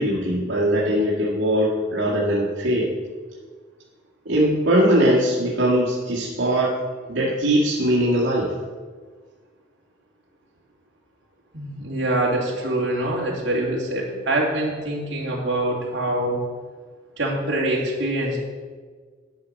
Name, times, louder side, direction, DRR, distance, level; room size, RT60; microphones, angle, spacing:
voice 1, 0.0-2.9 4.3-6.7 7.1-8.5, right 1 dB, 80° right, -7 dB, 2.1 m, -21 dB
voice 2, 11.5-16.4 17.2-18.4, right 1 dB, 65° right, -3 dB, 2.8 m, -24 dB
11.5 x 6.0 x 6.4 m, 1.5 s
head